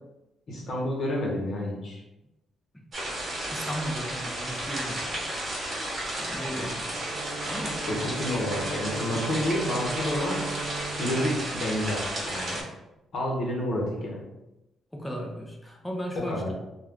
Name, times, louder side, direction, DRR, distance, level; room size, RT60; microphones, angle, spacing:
voice 1, 0.5-2.0 6.5-6.7 7.9-10.5 11.0-12.7 13.1-14.2 16.1-16.5, left 1 dB, 60° left, -2 dB, 0.9 m, -29 dB
sound 1, 2.9-12.6, right 1 dB, 40° right, 1.0 m, -33 dB
voice 2, 3.5-5.4 6.2-7.0 7.4-7.9 14.9-16.5, equal, 5° left, 0 dB, 0.6 m, -36 dB
Bowed string instrument, 6.9-12.3, right 4 dB, 65° right, 0.8 m, -38 dB
2.3 x 2.3 x 3.5 m, 0.94 s
cardioid pair, 90°, 0 cm